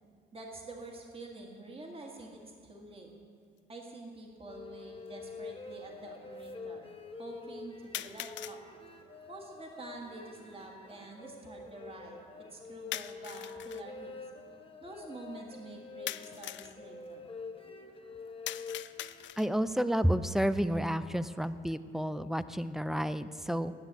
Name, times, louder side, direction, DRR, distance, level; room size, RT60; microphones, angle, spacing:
voice 1, 0.3-3.1 3.7-6.9 7.2-8.6 9.3-12.2 12.5-14.2 14.8-17.3, right 2 dB, 30° right, 1 dB, 1.9 m, -47 dB
sound 1, 3.6-3.7 4.7-4.8 7.9-8.6 12.9-13.8 16.1-16.8 18.5-19.6, left 13 dB, 70° left, 0.4 m, -41 dB
sound 2, 4.5-19.3, left 4 dB, 25° left, 1.1 m, -47 dB
voice 2, 19.4-23.7, equal, ahead, 13 dB, 0.4 m, -30 dB
10.5 x 7.5 x 8.4 m, 2.2 s
cardioid pair, 90°, 20 cm